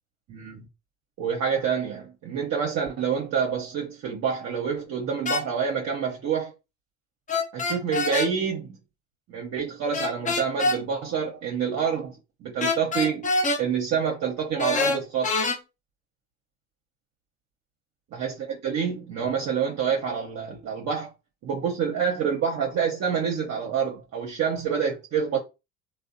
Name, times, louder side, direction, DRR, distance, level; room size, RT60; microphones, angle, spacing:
voice 1, 0.3-0.7 1.2-6.5 7.5-8.8 9.3-13.3 13.6-15.3 18.1-21.1 21.4-25.4, right 7 dB, 50° right, 0.7 m, -27 dB
sound 1, 5.2-5.4 7.3-8.3 9.9-10.8 12.6-13.6 14.6-15.6, left 2 dB, 20° left, 0.6 m, -25 dB
2.6 x 2.1 x 2.5 m
hypercardioid pair, 70°, 34 cm